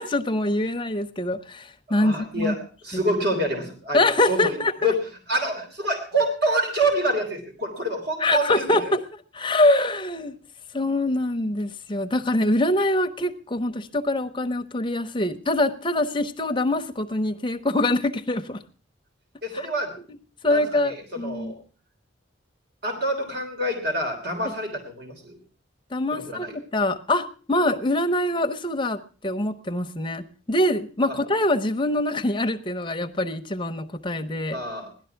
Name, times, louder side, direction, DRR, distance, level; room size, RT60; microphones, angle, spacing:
voice 1, 0.0-2.6 3.9-4.9 8.2-9.0 9.3-10.3 10.7-18.6 20.4-21.5 25.9-34.6, left 1 dB, 25° left, 7 dB, 0.8 m, -24 dB
voice 2, 1.9-2.6 2.8-4.0 4.3-5.0 5.3-8.9 19.4-19.9 20.4-21.5 22.8-25.4 26.1-26.5 31.1-31.2 34.5-34.9, right 1 dB, 50° right, 3 dB, 3.3 m, -27 dB
17.0 x 12.0 x 5.8 m, 0.39 s
head